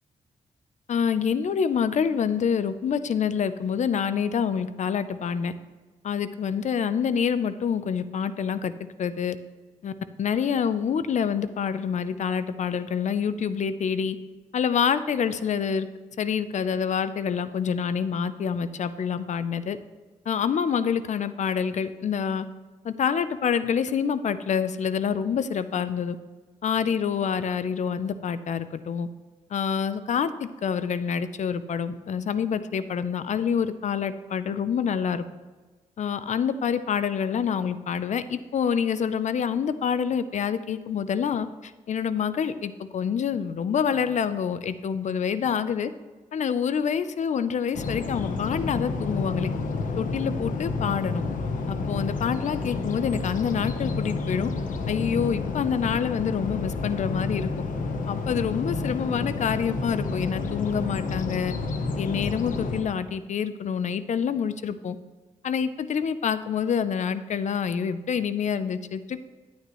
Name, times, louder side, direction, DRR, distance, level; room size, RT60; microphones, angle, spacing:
voice 1, 0.9-5.5 6.0-8.7 9.0-9.4 9.8-9.9 10.2-14.2 14.5-15.9 16.2-19.8 20.3-22.5 22.8-26.2 26.6-29.1 29.5-35.2 36.0-45.9 46.3-49.5 50.0-51.2 51.7-54.5 54.9-57.5 58.1-61.5 62.0-65.0 65.4-69.2, left 7 dB, 65° left, 13 dB, 0.6 m, -27 dB
sound 1, 47.7-62.8, left 3 dB, 80° left, 1.0 m, -30 dB
11.0 x 9.3 x 3.1 m, 1.3 s
cardioid pair, 95°, 13 cm